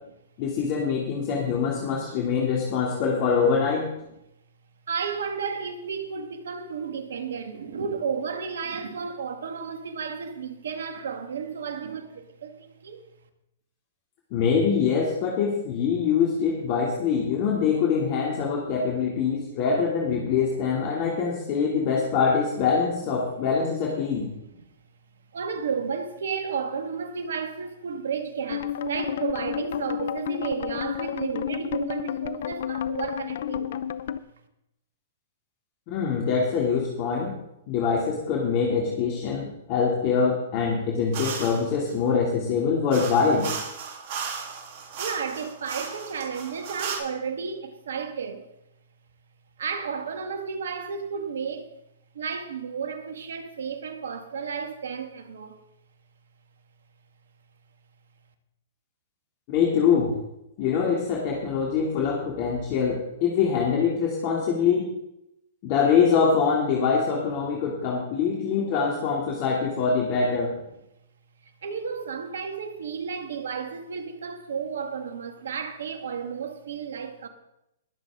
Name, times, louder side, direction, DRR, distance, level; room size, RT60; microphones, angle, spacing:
voice 1, 0.4-3.9 14.3-24.3 35.9-37.4 37.7-43.5 59.5-60.2 60.6-64.9 65.6-70.5, left 6 dB, 45° left, 2.8 m, -24 dB
voice 2, 4.9-13.0 25.3-33.9 45.0-48.4 49.6-51.7 52.1-55.6 71.4-77.3, right 6 dB, 75° right, 1.9 m, -32 dB
sound 1, 28.5-34.2, left 10 dB, 65° left, 0.7 m, -31 dB
sound 2, 41.1-41.6 42.9-47.0, right 6 dB, 55° right, 3.3 m, -35 dB
21.5 x 7.9 x 3.8 m
hypercardioid pair, 120°, 0 cm